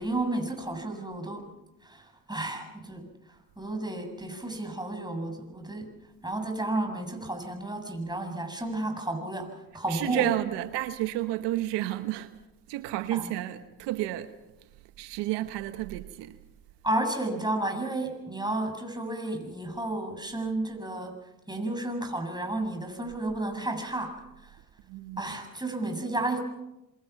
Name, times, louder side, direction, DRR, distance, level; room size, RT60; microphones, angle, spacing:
voice 1, 0.0-1.5 1.8-3.1 3.6-5.9 6.2-10.3 13.1-13.3 16.8-21.1 21.5-24.2 24.4-24.5 25.2-26.4, right 2 dB, 10° right, 7.6 m, -32 dB
voice 2, 9.9-12.4 12.7-14.3 15.0-16.4 24.9-25.2, right 15 dB, 85° right, 1.1 m, -31 dB
26.5 x 25.0 x 5.9 m
supercardioid pair, 55°, 41 cm